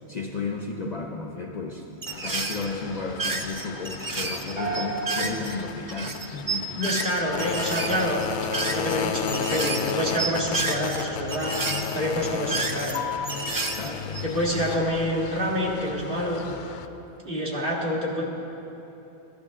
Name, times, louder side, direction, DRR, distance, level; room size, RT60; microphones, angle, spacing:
voice 1, 0.1-1.9 2.2-6.7 13.7-14.3, left 3 dB, 45° left, 2 dB, 0.6 m, -33 dB
sound 1, 2.0-2.7 3.0-5.6 5.9-9.0 9.3-9.9 10.2-11.0 11.3-13.0 13.2-14.4, right 3 dB, 25° right, 0.5 m, -31 dB
sound 2, 2.1-16.9, left 7 dB, 85° left, 0.9 m, -34 dB
sound 3, 4.6-6.8, right 3 dB, 80° right, 2.7 m, -34 dB
voice 2, 6.3-8.3 8.6-13.0 14.2-16.4 17.2-18.2, equal, 50° right, -4 dB, 2.1 m, -27 dB
15.0 x 11.5 x 3.6 m, 3.0 s
omnidirectional pair, 1.1 m